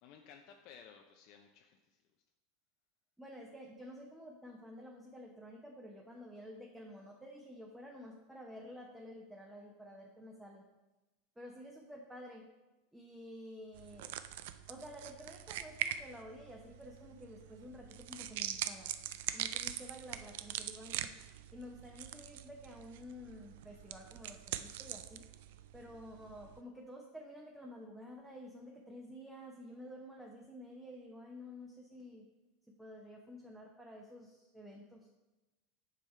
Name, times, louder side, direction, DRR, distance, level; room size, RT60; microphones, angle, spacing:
voice 1, 0.0-2.0, left 7 dB, 55° left, 4 dB, 0.5 m, -57 dB
voice 2, 3.2-10.6 11.4-12.5 12.9-14.1 14.7-18.9 19.3-21.2 21.5-25.2 25.7-32.3 32.8-35.1, equal, 5° right, -1 dB, 0.8 m, -51 dB
sound 1, 13.7-26.6, right 11 dB, 75° right, 0.4 m, -43 dB
7.3 x 3.5 x 5.5 m, 1.1 s
supercardioid pair, 125°, 0 cm